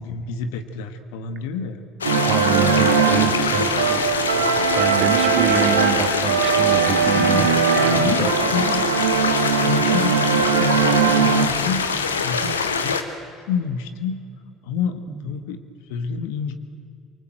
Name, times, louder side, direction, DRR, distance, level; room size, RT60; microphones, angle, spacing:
voice 1, 0.0-1.8 7.1-8.8 9.4-11.9 12.2-13.0 13.5-14.2 14.6-15.6 15.9-16.5, left 6 dB, 70° left, 8 dB, 1.6 m, -28 dB
sound 1, 2.0-13.0, left 5 dB, 85° left, 1.2 m, -24 dB
sound 2, 2.0-11.5, right 7 dB, 80° right, 1.4 m, -20 dB
voice 2, 2.1-4.1 4.3-8.3 12.4-12.6 15.2-15.3, right 6 dB, 45° right, 6 dB, 2.3 m, -27 dB
25.5 x 24.0 x 7.9 m, 2.3 s
figure-of-eight pair, 60°, 0 cm